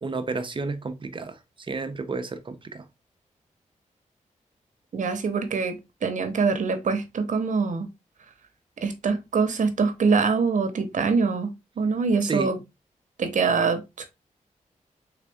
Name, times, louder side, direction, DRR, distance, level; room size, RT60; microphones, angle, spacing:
voice 1, 0.0-2.9 12.2-12.5, right 3 dB, 40° right, 0.7 m, -31 dB
voice 2, 4.9-7.9 8.8-12.6 13.2-14.1, right 5 dB, 70° right, 0.9 m, -24 dB
4.0 x 3.7 x 3.4 m
wide cardioid pair, 105°, 14 cm